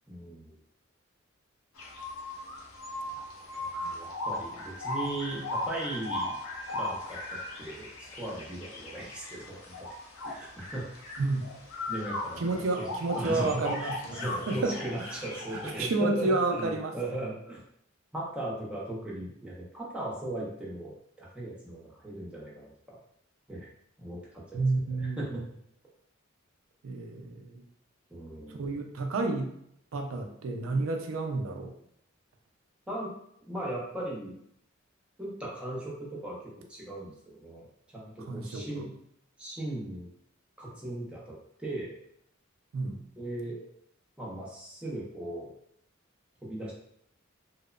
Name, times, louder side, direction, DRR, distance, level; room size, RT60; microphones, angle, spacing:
voice 1, 0.1-0.5 3.6-6.4 6.7-7.9 8.2-9.9 10.2-10.8 11.9-12.6 13.1-17.6 18.1-20.9 21.2-23.0 23.5-23.7 24.0-24.6 25.0-25.4 28.1-28.6 32.9-33.1 33.5-34.4 35.2-37.7 37.9-38.9 39.4-40.1 40.6-42.0 43.2-43.7 44.2-45.5 46.4-46.7, right 1 dB, 5° right, -5 dB, 0.6 m, -38 dB
sound 1, 1.7-15.8, left 1 dB, 85° left, 0.6 m, -38 dB
voice 2, 11.2-11.5 12.4-13.9 14.5-14.8 15.0-15.2 15.5-17.0 24.5-25.5 26.8-27.6 28.5-29.5 29.9-31.7 38.3-38.9 42.7-43.0, right 3 dB, 85° right, 4 dB, 0.4 m, -30 dB
2.8 x 2.0 x 2.3 m, 0.70 s
head